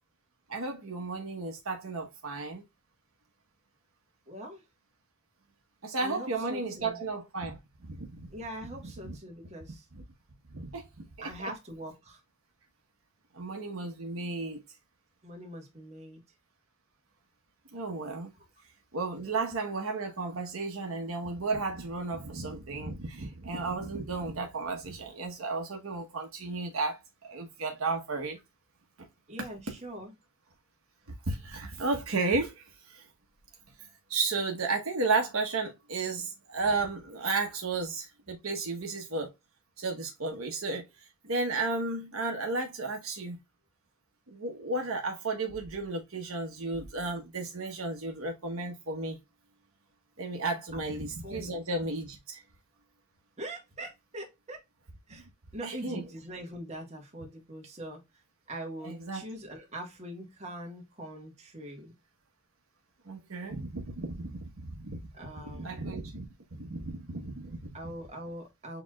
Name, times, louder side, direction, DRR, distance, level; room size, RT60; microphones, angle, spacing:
voice 1, 0.5-2.6 5.8-8.3 9.0-9.2 10.5-10.9 11.2-11.3 13.3-14.6 17.7-18.3 18.9-28.4 29.4-29.5 31.3-33.0 34.1-39.3 39.8-40.8 41.2-43.4 44.3-49.2 50.2-52.4 55.6-56.0 58.8-59.3 63.1-65.0 65.5-66.3 66.6-67.6, right 3 dB, 70° right, 1.1 m, -33 dB
voice 2, 4.3-4.6 6.0-7.0 8.3-9.8 11.2-12.2 15.2-16.2 29.3-30.1 50.7-50.8 51.2-51.5 53.4-54.6 55.1-55.2 55.5-58.0 58.5-61.9 65.1-65.8 67.7-68.8, right 1 dB, 30° right, 1.6 m, -42 dB
6.9 x 3.0 x 2.3 m
head